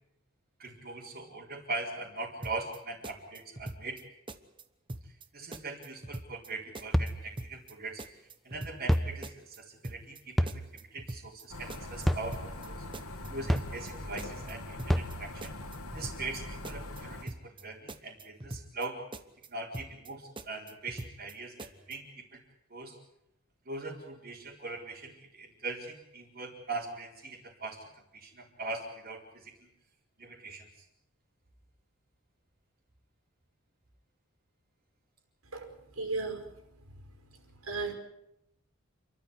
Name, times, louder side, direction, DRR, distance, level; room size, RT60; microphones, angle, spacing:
voice 1, 0.6-4.0 5.3-8.0 8.4-12.8 13.3-15.5 15.9-19.0 19.5-22.4 22.7-23.0 23.7-27.8 28.1-29.5 30.2-30.7, right 3 dB, 45° right, -5 dB, 4.3 m, -41 dB
sound 1, 2.4-2.8 3.0-4.0 4.3-4.6 4.9-5.3 5.5-6.5 6.7-7.1 7.4-7.7 8.0-9.0 9.2-9.6 9.8-10.2 10.5-11.4 11.7-12.1 12.3-12.7 12.9-13.9 14.2-14.5 14.8-15.2 15.4-16.4 16.6-17.0 17.3-17.6 17.9-18.9 19.1-19.5 19.7-20.1 20.4-21.3 21.6-22.0, right 1 dB, 20° right, 1.1 m, -43 dB
sound 2, 6.9-7.2 8.9-9.1 10.4-10.6 12.1-12.3 13.5-13.7 14.9-15.2, equal, ahead, 0.8 m, -26 dB
sound 3, 11.5-17.2, left 1 dB, 80° left, 2.8 m, -42 dB
voice 2, 35.5-36.5 37.6-37.9, right 3 dB, 75° right, 4 dB, 5.5 m, -35 dB
29.0 x 12.5 x 9.7 m, 0.83 s
head